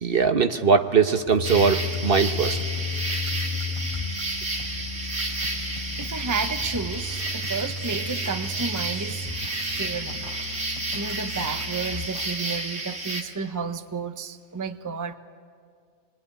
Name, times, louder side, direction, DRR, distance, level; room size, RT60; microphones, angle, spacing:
voice 1, 0.0-2.6, right 5 dB, 55° right, 8 dB, 1.1 m, -21 dB
sound 1, 1.3-11.9, left 5 dB, 30° left, 4.1 m, -34 dB
sound 2, 1.4-13.2, right 2 dB, 80° right, 2.7 m, -31 dB
voice 2, 6.0-9.3 9.7-10.3 10.7-15.2, right 5 dB, 20° right, 8 dB, 0.8 m, -32 dB
26.5 x 22.0 x 9.8 m, 2.1 s
omnidirectional pair, 1.2 m